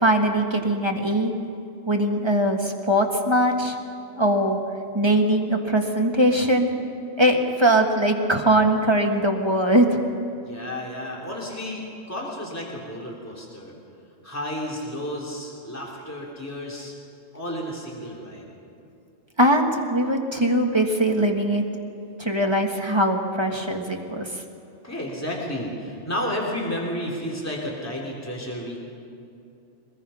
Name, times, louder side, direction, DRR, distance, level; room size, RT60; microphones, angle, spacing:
voice 1, 0.0-1.3 1.9-3.8 4.2-4.6 4.9-6.7 7.2-9.9 19.4-21.6 22.2-24.3, right 1 dB, 20° right, 2 dB, 1.7 m, -21 dB
voice 2, 10.4-13.7 14.2-16.9 17.3-18.5 24.8-28.8, equal, 10° left, -3 dB, 3.3 m, -32 dB
24.0 x 21.0 x 5.7 m, 2.6 s
omnidirectional pair, 1.3 m